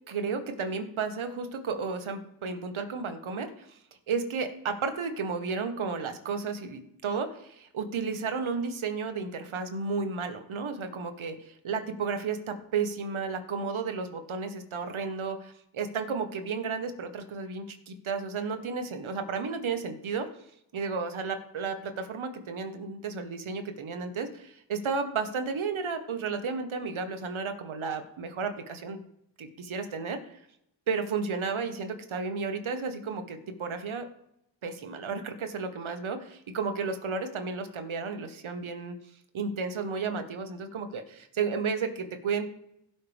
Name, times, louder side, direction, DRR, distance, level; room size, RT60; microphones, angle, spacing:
voice 1, 0.1-3.8 4.1-20.3 20.7-29.0 29.4-30.4 30.9-34.1 34.6-38.9 39.3-42.5, right 5 dB, 75° right, 7 dB, 1.4 m, -33 dB
16.5 x 5.6 x 3.5 m, 0.78 s
cardioid pair, 50°, 48 cm